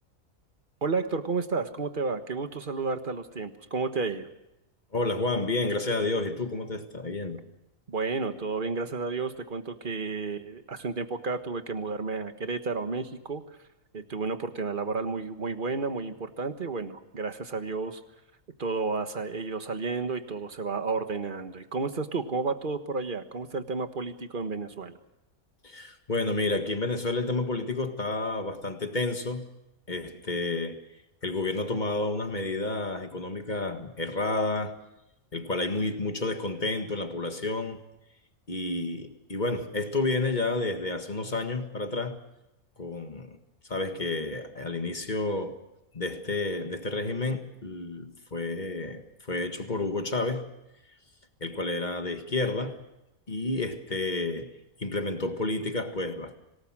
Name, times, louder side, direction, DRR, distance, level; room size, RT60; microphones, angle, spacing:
voice 1, 0.8-4.3 7.9-13.6 13.9-18.0 18.6-25.0, right 4 dB, 35° right, 1.5 m, -31 dB
voice 2, 4.9-7.4 25.6-29.5 29.9-30.9 31.2-34.8 35.3-37.8 38.5-42.2 42.8-43.4 43.7-45.6 45.9-50.5 51.4-52.8 53.3-54.5 54.8-56.3, left 2 dB, 30° left, 1.8 m, -30 dB
26.0 x 18.5 x 6.2 m
omnidirectional pair, 1.5 m